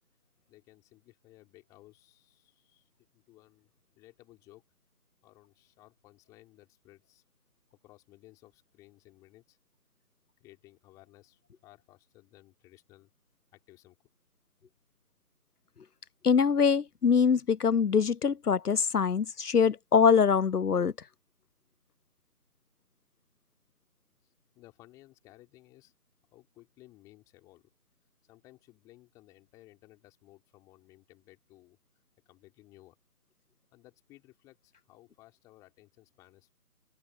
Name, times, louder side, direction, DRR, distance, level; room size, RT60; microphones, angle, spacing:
voice 1, 0.5-3.7 4.0-4.6 5.2-7.2 7.8-9.6 10.4-13.1 13.5-14.0 24.2-25.9 26.3-27.7 28.2-31.8 32.2-33.0 33.7-36.5, left 18 dB, 5° left, 4.7 m, -58 dB
voice 2, 16.2-20.9, left 6 dB, 85° left, 0.7 m, -24 dB
open air
figure-of-eight pair, 155°, 45 cm